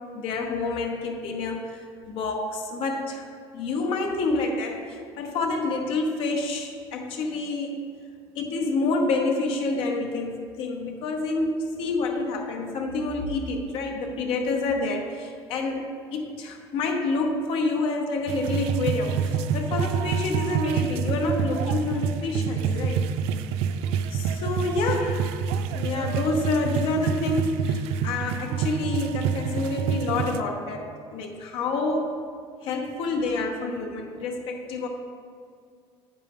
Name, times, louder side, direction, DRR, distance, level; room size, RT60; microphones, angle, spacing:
voice 1, 0.1-7.8 8.3-15.8 16.1-23.0 24.1-25.3 25.7-32.1 32.6-34.9, left 3 dB, 65° left, 2 dB, 0.9 m, -28 dB
sound 1, 18.3-30.4, right 7 dB, 80° right, 0.3 m, -27 dB
8.8 x 5.3 x 3.5 m, 2.2 s
cardioid pair, 135°, 10 cm